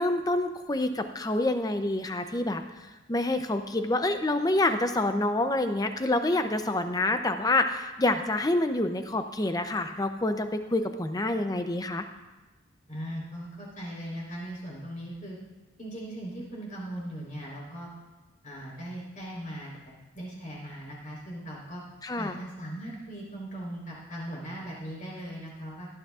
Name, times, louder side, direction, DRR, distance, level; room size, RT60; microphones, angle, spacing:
voice 1, 0.0-2.6 3.1-12.0 22.0-22.4, left 2 dB, 20° left, 8 dB, 0.5 m, -27 dB
voice 2, 12.9-15.4 15.8-17.9 18.4-19.7 20.1-21.8 22.2-25.9, right 1 dB, 35° left, -4 dB, 4.1 m, -39 dB
17.5 x 11.5 x 2.5 m, 1.1 s
head